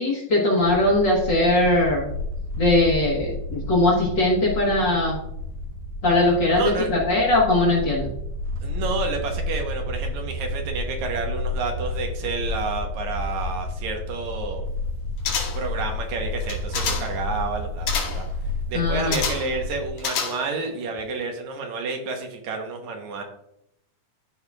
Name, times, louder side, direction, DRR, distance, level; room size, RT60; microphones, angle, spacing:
voice 1, 0.0-2.1 2.6-5.2 6.0-8.1 18.7-19.2, left 2 dB, 45° left, -3 dB, 1.7 m, -20 dB
sound 1, 0.6-19.9, left 2 dB, 60° right, 1.5 m, -31 dB
voice 2, 6.5-6.9 8.6-14.6 15.2-18.3 18.7-23.2, right 4 dB, 75° right, 3 dB, 2.3 m, -30 dB
sound 2, 15.2-15.8 16.4-17.2 17.9-18.3 19.1-19.6 20.0-20.7 21.0-21.1, left 6 dB, 75° left, 2.4 m, -28 dB
12.5 x 4.9 x 2.4 m, 0.77 s
omnidirectional pair, 3.4 m